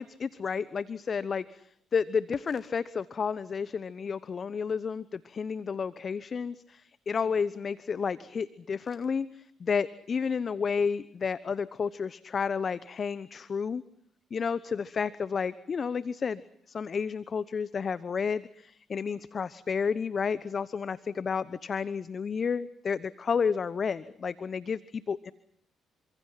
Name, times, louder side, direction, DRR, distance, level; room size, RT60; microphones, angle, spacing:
voice 1, 0.0-13.8 14.3-16.4 16.7-25.3, left 6 dB, 50° left, 17 dB, 1.0 m, -31 dB
29.5 x 26.0 x 5.9 m, 0.68 s
hypercardioid pair, 50°, 0 cm